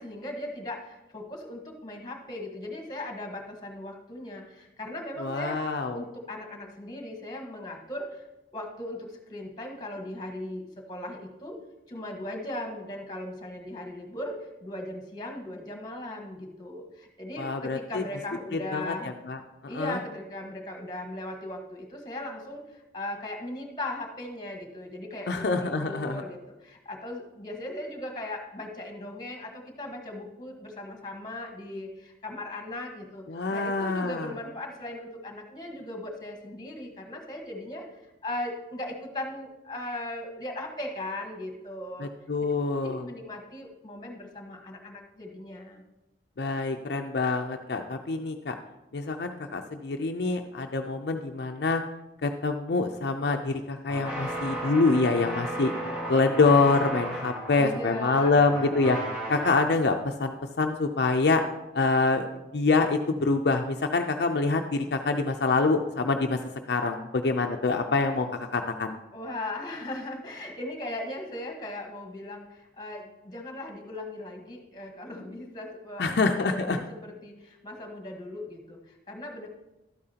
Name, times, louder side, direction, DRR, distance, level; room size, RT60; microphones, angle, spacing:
voice 1, 0.0-5.6 5.9-8.2 8.5-11.6 11.9-19.1 19.7-37.9 38.2-42.1 42.8-45.8 57.6-58.7 69.1-79.5, left 1 dB, 25° left, 2 dB, 1.3 m, -38 dB
voice 2, 5.2-6.0 17.4-18.0 18.5-19.4 19.7-20.0 25.3-26.2 33.3-34.3 42.0-43.0 46.4-48.5 48.9-51.8 52.2-55.7 56.1-59.0 59.3-61.4 61.7-62.2 62.5-66.4 66.7-69.0 76.0-76.8, left 3 dB, 65° left, 4 dB, 0.5 m, -26 dB
sound 1, 53.9-59.6, right 1 dB, 10° right, 2.2 m, -35 dB
12.0 x 8.6 x 2.8 m, 0.96 s
head